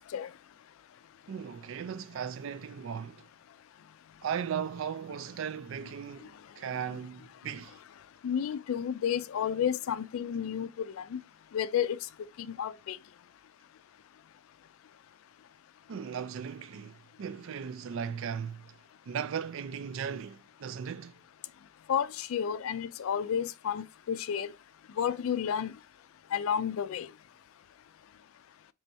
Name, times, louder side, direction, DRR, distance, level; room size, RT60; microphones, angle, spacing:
voice 1, 1.3-3.2 4.2-7.8 15.9-18.7 19.1-21.2, right 7 dB, 65° right, 0.4 m, -37 dB
voice 2, 8.2-11.2 11.5-12.0 12.4-13.0 21.9-24.5 25.0-25.7 26.3-27.1, left 8 dB, 75° left, 0.3 m, -31 dB
4.4 x 3.1 x 2.7 m
head